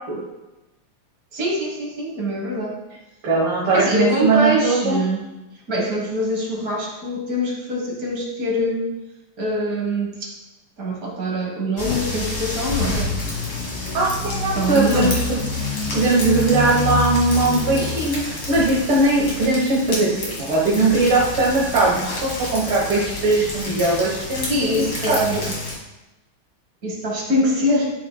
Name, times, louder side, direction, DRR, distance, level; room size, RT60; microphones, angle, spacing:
voice 1, 1.3-2.8 3.7-5.2 5.7-8.9 9.4-10.4 10.8-13.0 14.5-15.1 24.4-25.5 26.8-27.9, equal, 45° right, 0 dB, 1.8 m, -23 dB
voice 2, 3.2-5.0 13.0-13.1 13.9-15.2 15.9-24.5 25.1-25.2, right 2 dB, 80° right, -5 dB, 2.2 m, -20 dB
sound 1, 11.8-25.7, left 2 dB, 45° left, 2.5 m, -28 dB
12.0 x 6.1 x 2.3 m, 1.0 s
omnidirectional pair, 2.3 m